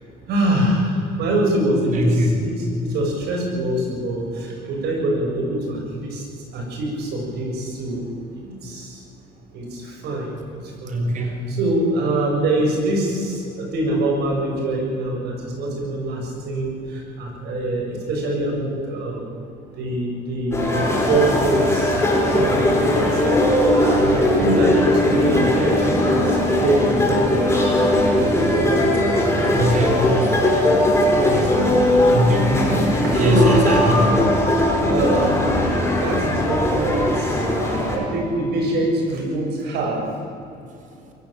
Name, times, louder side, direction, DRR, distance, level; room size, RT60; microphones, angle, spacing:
voice 1, 0.3-6.2 6.5-8.1 8.3-9.0 9.5-11.0 11.5-19.3 19.8-27.7 28.1-30.0 31.1-32.2 33.0-33.6 34.9-35.6 36.0-40.2, right 1 dB, 75° right, 0 dB, 7.6 m, -24 dB
voice 2, 1.9-2.3 10.9-11.4 29.6-30.1 32.1-32.5 33.1-34.0, right 1 dB, 50° right, 4 dB, 3.8 m, -20 dB
sound 1, 20.5-38.0, left 1 dB, 15° left, 7.9 m, -19 dB
23.0 x 16.0 x 8.9 m, 2.6 s
cardioid pair, 110°, 17 cm